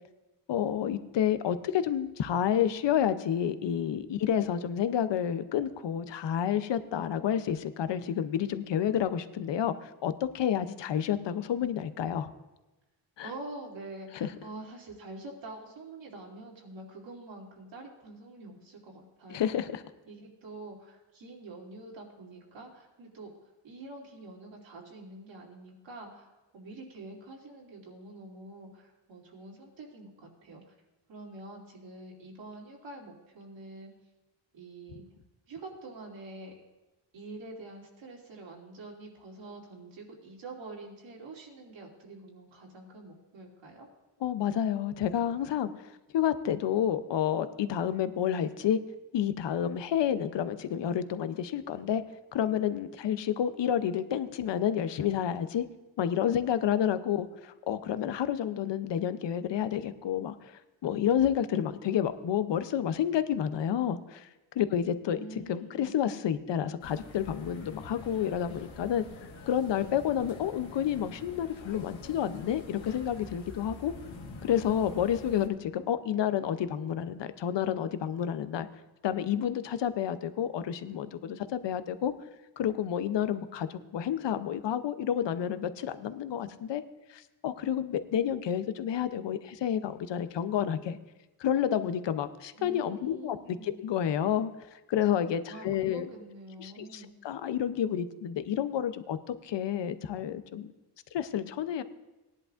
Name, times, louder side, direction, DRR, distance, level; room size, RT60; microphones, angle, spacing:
voice 1, 0.5-12.3 13.2-13.3 14.1-14.3 19.3-19.8 44.2-48.8 49.1-52.0 52.3-55.6 56.0-64.3 64.6-65.2 65.5-73.9 74.4-78.7 79.0-82.1 82.6-86.8 87.1-91.0 91.4-96.1 96.6-100.7 101.1-101.8, left 9 dB, 70° left, 12 dB, 0.7 m, -30 dB
voice 2, 13.2-19.4 20.1-23.3 23.6-30.7 31.1-33.9 34.5-35.0 35.5-36.5 37.1-43.9 65.1-65.9 92.5-93.7 95.5-97.2, right 2 dB, 85° right, -2 dB, 2.8 m, -46 dB
sound 1, 66.8-75.5, left 3 dB, 90° left, 1.6 m, -46 dB
18.5 x 10.5 x 2.5 m, 1.1 s
wide cardioid pair, 110°, 44 cm